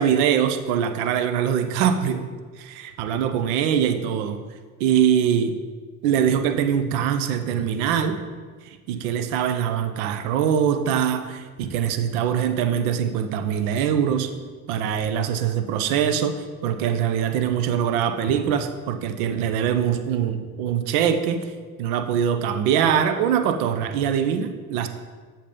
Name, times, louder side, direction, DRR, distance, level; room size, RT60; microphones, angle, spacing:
voice 1, 0.0-2.3 2.6-4.4 4.8-5.5 6.0-8.2 8.9-14.3 14.7-21.4 21.8-24.9, right 8 dB, 75° right, 8 dB, 0.7 m, -23 dB
7.3 x 2.9 x 5.4 m, 1.5 s
hypercardioid pair, 60°, 44 cm